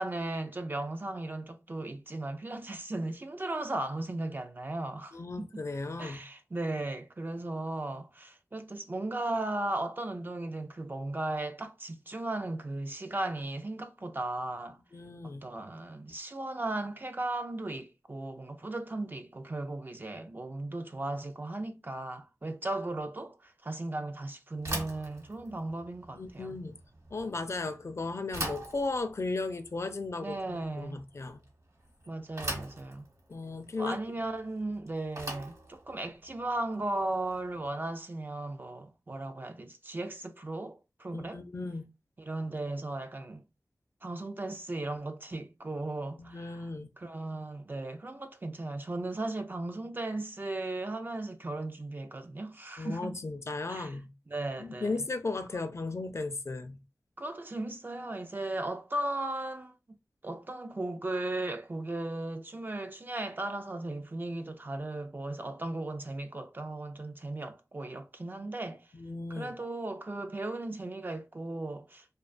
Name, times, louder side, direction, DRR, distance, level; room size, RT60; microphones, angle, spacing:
voice 1, 0.0-5.5 6.0-14.8 15.4-26.6 30.2-31.0 32.1-33.0 33.8-41.4 42.2-43.4 44.0-46.7 47.0-53.2 53.7-54.0 54.3-55.1 57.2-59.7 60.2-68.9 69.3-72.1, right 2 dB, 35° right, 0.3 m, -36 dB
voice 2, 5.1-6.2 14.9-15.4 26.1-26.8 27.1-31.4 33.3-34.0 41.1-41.8 46.2-46.9 52.8-54.1 54.6-56.8 68.9-69.5, left 3 dB, 50° left, 0.4 m, -36 dB
Bicycle / Thump thud, 24.6-37.7, right 1 dB, 55° right, 1.0 m, -43 dB
2.4 x 2.2 x 2.4 m
cardioid pair, 50°, 6 cm